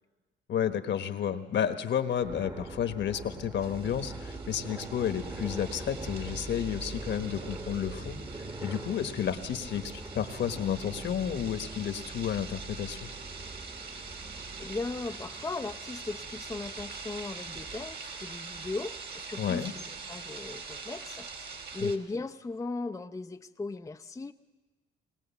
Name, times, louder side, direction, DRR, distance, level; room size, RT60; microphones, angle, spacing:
voice 1, 0.5-13.1 19.4-19.7 21.8-21.9, left 9 dB, 65° left, 1.3 m, -31 dB
sound 1, 2.2-18.0, right 2 dB, 20° right, 1.2 m, -43 dB
sound 2, 3.6-22.0, right 5 dB, 60° right, 2.6 m, -44 dB
voice 2, 14.1-24.3, left 3 dB, 15° left, 0.5 m, -38 dB
20.5 x 18.5 x 7.2 m
cardioid pair, 90°, 20 cm